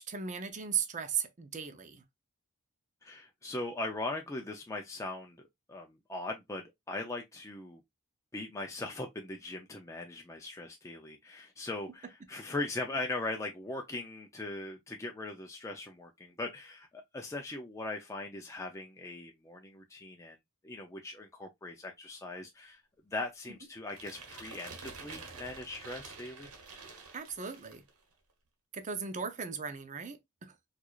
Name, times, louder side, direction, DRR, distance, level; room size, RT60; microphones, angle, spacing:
voice 1, 0.0-2.0 27.1-27.8 28.7-30.7, right 7 dB, 35° right, 0.6 m, -37 dB
voice 2, 3.0-7.8 8.3-20.4 20.6-22.8 23.1-26.5, left 2 dB, 15° left, 0.4 m, -40 dB
sound 1, 23.9-27.9, right 4 dB, 80° right, 1.1 m, -48 dB
4.6 x 2.4 x 2.3 m
head